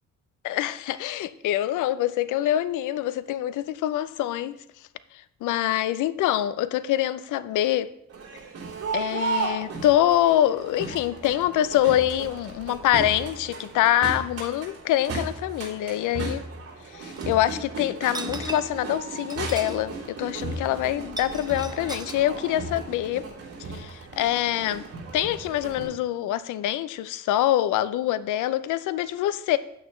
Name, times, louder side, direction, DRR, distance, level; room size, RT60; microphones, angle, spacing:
voice 1, 0.4-4.6 5.4-7.9 8.9-16.4 16.9-23.3 23.7-24.8 25.1-29.6, left 13 dB, 85° left, 15 dB, 0.6 m, -25 dB
Crowd, 8.1-25.9, right 3 dB, 55° right, 3.4 m, -35 dB
sound 1, 17.2-17.3 18.0-18.8 19.2-19.8 20.1-20.2 21.0-22.2, right 2 dB, 15° right, 0.8 m, -37 dB
8.8 x 8.6 x 3.1 m, 0.75 s
cardioid pair, 90°, 30 cm